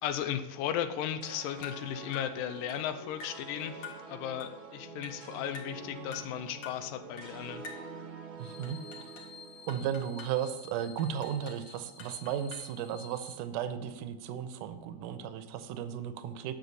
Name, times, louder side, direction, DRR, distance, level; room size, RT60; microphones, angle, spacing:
voice 1, 0.0-7.6, left 10 dB, 85° left, 9 dB, 2.3 m, -36 dB
sound 1, 1.2-10.5, right 3 dB, 65° right, 1.2 m, -47 dB
sound 2, 1.6-1.9 2.1-2.4 2.7-2.9 3.2-3.4 3.8-4.1 4.4-4.6 5.0-5.2 5.5-5.8 6.1-6.3 6.6-6.8 7.2-7.4 7.6-7.9 8.6-9.3 9.7-10.4 11.0-11.6 12.0-12.8, left 5 dB, 55° left, 1.7 m, -47 dB
sound 3, 8.4-13.4, left 6 dB, 40° left, 1.7 m, -52 dB
voice 2, 8.4-8.8 9.7-16.5, right 9 dB, 80° right, 10 dB, 2.1 m, -35 dB
9.6 x 6.5 x 4.1 m, 1.2 s
omnidirectional pair, 3.9 m